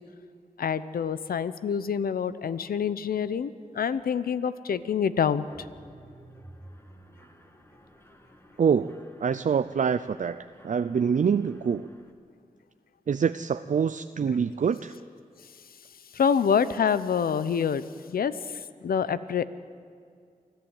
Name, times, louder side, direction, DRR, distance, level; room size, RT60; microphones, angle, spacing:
voice 1, 0.6-5.4 16.1-18.3 18.8-19.4, left 7 dB, 85° left, 14 dB, 0.8 m, -26 dB
Mechanisms, 5.4-12.1, right 1 dB, 15° left, 2.1 m, -53 dB
voice 2, 8.6-8.9 9.2-11.9 13.1-14.9, right 6 dB, 60° right, 11 dB, 0.5 m, -25 dB
24.0 x 14.0 x 9.0 m, 2.2 s
cardioid pair, 55°, 15 cm